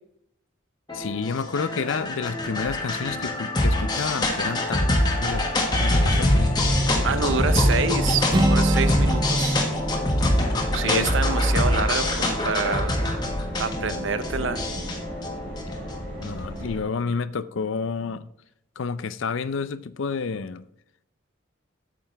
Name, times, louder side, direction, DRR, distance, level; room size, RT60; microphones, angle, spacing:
voice 1, 0.9-5.5 5.8-6.5 10.8-11.1 16.2-18.3 18.8-20.7, left 5 dB, 70° left, 0.5 m, -29 dB
sound 1, 0.9-16.4, left 1 dB, 20° left, 1.4 m, -24 dB
sound 2, 5.6-16.8, equal, 45° right, 3.6 m, -34 dB
voice 2, 7.0-9.6 10.7-13.0 13.6-14.6, right 5 dB, 65° right, 0.7 m, -27 dB
Acoustic guitar, 8.3-12.2, right 1 dB, 20° right, 0.4 m, -27 dB
8.7 x 7.7 x 3.4 m
head